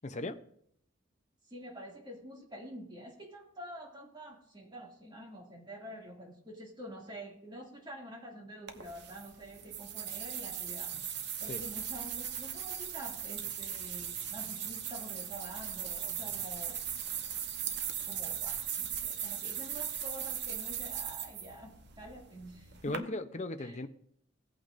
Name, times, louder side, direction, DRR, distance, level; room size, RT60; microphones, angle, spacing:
voice 1, 0.0-0.4 11.4-11.6 22.8-23.9, left 2 dB, 35° left, 9 dB, 0.7 m, -37 dB
voice 2, 1.5-10.9 11.4-16.8 18.1-23.2 23.6-23.8, equal, 25° right, 0 dB, 2.4 m, -47 dB
sound 1, 8.7-23.0, right 9 dB, 60° right, 0.9 m, -38 dB
17.5 x 8.6 x 2.6 m, 0.68 s
head